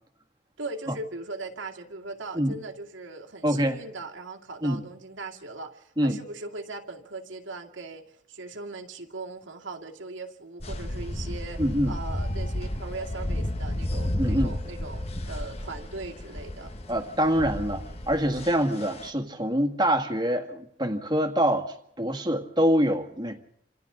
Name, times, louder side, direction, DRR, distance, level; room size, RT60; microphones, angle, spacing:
voice 1, 0.6-16.7, right 3 dB, 80° right, 2.3 m, -39 dB
voice 2, 3.4-3.8 4.6-4.8 6.0-6.2 11.6-12.0 14.2-14.5 16.9-23.4, equal, 20° right, 1.9 m, -25 dB
sound 1, 10.6-19.1, left 1 dB, 30° left, 1.4 m, -32 dB
28.0 x 27.0 x 3.9 m
head